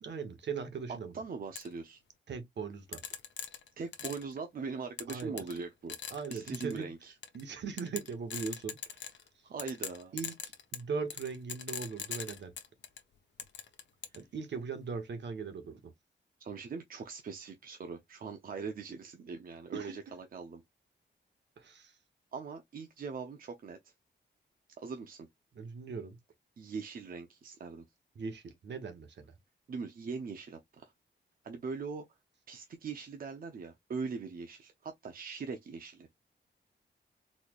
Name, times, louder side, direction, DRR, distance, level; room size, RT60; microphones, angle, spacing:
voice 1, 0.0-1.1 2.3-3.0 5.1-5.4 6.1-6.9 7.3-8.8 10.1-10.4 10.7-12.5 14.1-15.9 19.7-19.9 21.6-21.9 25.5-26.2 28.1-29.3, right 5 dB, 70° right, 1.0 m, -39 dB
voice 2, 1.1-2.0 3.8-6.0 6.3-7.1 9.4-10.1 16.4-20.6 22.3-23.9 24.8-25.3 26.6-27.8 29.7-30.9 31.4-32.0 32.5-36.1, right 5 dB, 50° right, 0.6 m, -41 dB
sound 1, 1.5-1.7 2.9-4.3 5.0-5.6 5.9-6.8 7.2-7.4 7.8-9.3 9.6-13.0 13.4-14.2, left 8 dB, 75° left, 0.8 m, -41 dB
4.1 x 3.2 x 2.3 m
wide cardioid pair, 165°, 19 cm